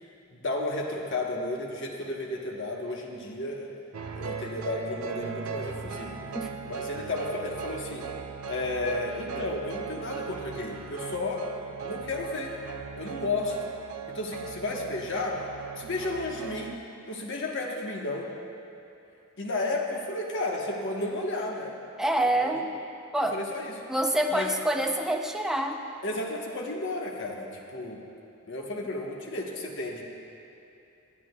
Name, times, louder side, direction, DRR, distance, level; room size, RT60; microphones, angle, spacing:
voice 1, 0.3-3.7 4.1-6.2 6.7-8.1 8.5-11.5 11.8-12.5 12.9-13.5 14.1-15.4 15.7-16.7 17.1-18.3 19.4-21.7 22.4-22.5 23.3-23.7 24.3-24.5 26.0-28.0 28.5-30.1, left 2 dB, 60° left, 0 dB, 1.2 m, -32 dB
sound 1, 3.9-16.8, right 6 dB, 90° right, 0.5 m, -38 dB
voice 2, 22.0-22.7 23.1-23.4 23.9-25.8, right 1 dB, ahead, 2 dB, 0.5 m, -26 dB
22.0 x 8.5 x 2.3 m, 2.8 s
head